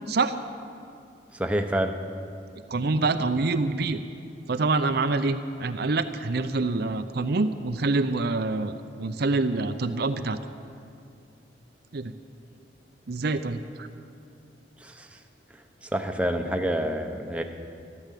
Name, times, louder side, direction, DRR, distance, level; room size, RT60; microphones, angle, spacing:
voice 1, 1.3-1.9 14.8-15.1 15.8-17.4, right 1 dB, 5° right, 4 dB, 0.9 m, -27 dB
voice 2, 2.7-4.0 4.5-10.4 11.9-12.1 13.1-13.9, right 3 dB, 65° right, 9 dB, 0.6 m, -26 dB
14.0 x 12.0 x 8.4 m, 2.4 s
head